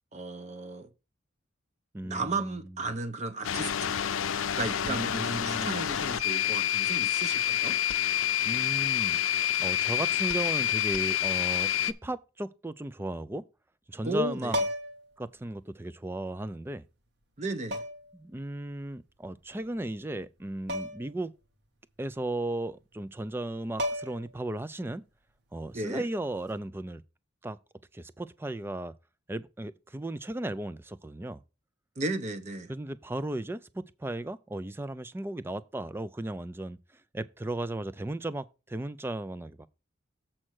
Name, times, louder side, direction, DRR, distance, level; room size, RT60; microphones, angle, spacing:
voice 1, 0.1-0.9 2.0-4.0 4.6-7.8 14.0-14.6 17.4-17.8 25.7-26.0 32.0-32.7, right 2 dB, 35° right, 0.8 m, -34 dB
voice 2, 1.9-2.6 4.8-5.8 8.4-13.4 13.9-14.6 15.2-16.8 18.1-21.3 22.0-25.0 25.5-27.0 27.4-27.6 27.9-28.9 29.3-31.4 32.7-39.7, right 1 dB, 10° right, 0.3 m, -36 dB
sound 1, 3.4-11.9, left 10 dB, 90° left, 0.5 m, -28 dB
sound 2, 14.5-15.1 16.4-16.5 17.7-18.2 20.7-21.1 21.4-21.5 23.4-23.5 23.8-24.4 26.3-26.6, left 1 dB, 55° right, 1.3 m, -33 dB
7.5 x 4.4 x 6.2 m
head